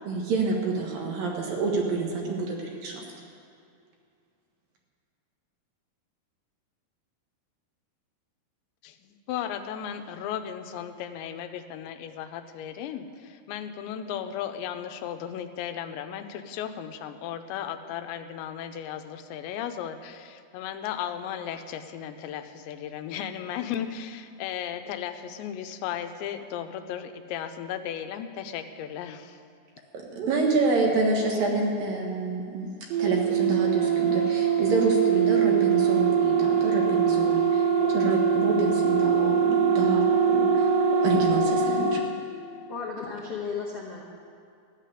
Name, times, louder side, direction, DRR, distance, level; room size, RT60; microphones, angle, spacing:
voice 1, 0.0-3.0 30.2-32.7 33.0-40.7 41.0-42.0, right 3 dB, 60° right, 0 dB, 2.8 m, -27 dB
voice 2, 9.3-29.4, left 9 dB, 85° left, 8 dB, 3.0 m, -35 dB
sound 1, 32.9-42.0, right 6 dB, 85° right, 3.9 m, -23 dB
voice 3, 42.7-44.0, left 5 dB, 65° left, -4 dB, 1.5 m, -34 dB
14.5 x 7.5 x 9.9 m, 2.4 s
omnidirectional pair, 5.1 m